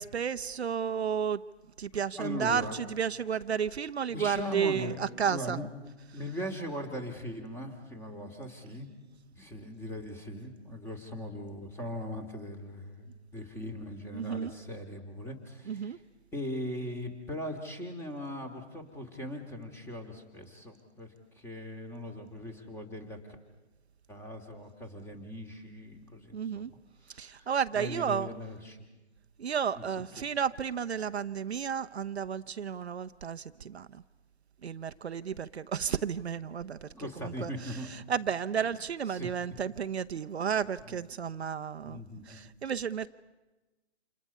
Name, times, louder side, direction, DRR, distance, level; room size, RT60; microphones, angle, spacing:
voice 1, 0.0-1.4 1.8-5.6 14.1-14.5 15.7-16.0 26.3-26.7 27.1-28.3 29.4-34.0 34.6-36.9 37.2-37.8 38.1-43.1, right 7 dB, 65° right, 11 dB, 0.9 m, -32 dB
voice 2, 2.2-2.8 4.1-5.7 6.1-8.9 9.3-16.0 16.3-23.2 24.1-26.8 27.1-29.0 29.8-29.9 30.2-30.3 36.9-37.9 39.1-39.3 40.9-41.0 41.8-42.5, equal, 5° left, 6 dB, 2.4 m, -40 dB
29.5 x 28.0 x 5.5 m, 1.1 s
figure-of-eight pair, 140°, 35 cm